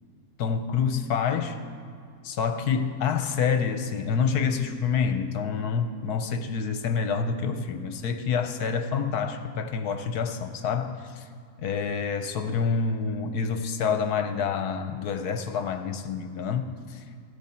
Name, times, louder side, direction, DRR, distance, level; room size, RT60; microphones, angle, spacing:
voice 1, 0.4-1.6 2.2-11.3 11.6-17.0, left 6 dB, 75° left, 7 dB, 1.3 m, -27 dB
16.0 x 14.0 x 4.4 m, 2.2 s
omnidirectional pair, 1.7 m